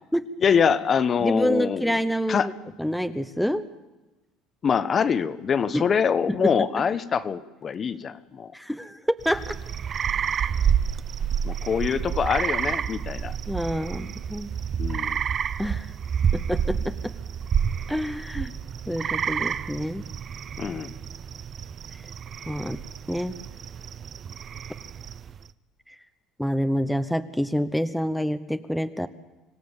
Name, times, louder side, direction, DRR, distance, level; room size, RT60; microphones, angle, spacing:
voice 1, 0.4-2.0 2.3-2.5 4.6-8.5 11.4-13.3 14.8-15.2 20.6-20.9, left 6 dB, 35° left, 12 dB, 1.0 m, -24 dB
voice 2, 1.2-2.5 2.8-3.6 5.7-5.8 6.3-6.5 8.5-9.5 13.5-14.5 15.6-15.9 16.3-17.1 17.9-18.5 18.9-20.0 22.5-22.8 23.1-23.3 25.9-26.0 26.4-29.1, equal, ahead, 10 dB, 0.9 m, -27 dB
sound 1, 9.2-25.4, right 8 dB, 35° right, 0.7 m, -29 dB
26.0 x 17.5 x 7.2 m, 1.1 s
cardioid pair, 125°, 0 cm